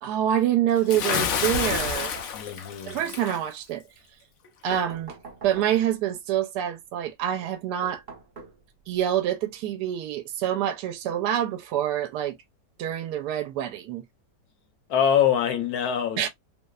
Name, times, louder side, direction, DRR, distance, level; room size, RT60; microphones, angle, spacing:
voice 1, 0.0-2.1 2.9-3.8 4.6-5.2 5.4-8.0 8.9-12.4 12.8-14.0 16.2-16.3, right 11 dB, 75° right, 1.1 m, -26 dB
Bathtub (filling or washing) / Splash splatter, 0.9-3.4, left 7 dB, 90° left, 0.6 m, -28 dB
sound 1, 1.4-2.7 4.7-6.0 7.8-9.0, right 4 dB, 45° right, 0.6 m, -44 dB
voice 2, 2.3-3.0 14.9-16.3, left 9 dB, 70° left, 1.1 m, -24 dB
3.1 x 2.0 x 2.3 m
omnidirectional pair, 1.9 m